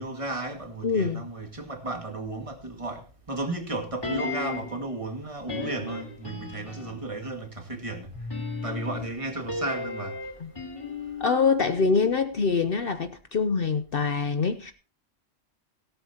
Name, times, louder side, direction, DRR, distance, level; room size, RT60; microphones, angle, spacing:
voice 1, 0.0-8.1 8.6-10.3, right 2 dB, 25° right, 2.0 m, -34 dB
voice 2, 0.8-1.3 10.4-10.5 11.2-14.7, left 5 dB, 55° left, 0.9 m, -24 dB
sound 1, 4.0-4.8 5.5-7.1 8.1-12.4 12.6-12.7, left 3 dB, 20° left, 3.6 m, -35 dB
17.5 x 12.5 x 2.8 m
omnidirectional pair, 1.2 m